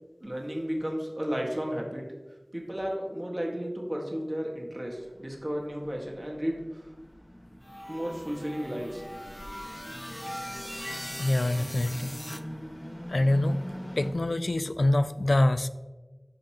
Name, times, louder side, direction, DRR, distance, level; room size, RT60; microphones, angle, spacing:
voice 1, 0.2-6.9 7.9-9.1, equal, 30° right, -1 dB, 1.7 m, -33 dB
sound 1, 4.8-14.1, equal, 35° left, 1.5 m, -44 dB
sound 2, 7.6-12.4, equal, 10° left, 0.5 m, -40 dB
voice 2, 11.2-12.1 13.1-13.6 14.0-15.7, left 1 dB, 85° left, 13 dB, 0.3 m, -25 dB
13.0 x 5.3 x 2.9 m, 1.2 s
wide cardioid pair, 40°, 0 cm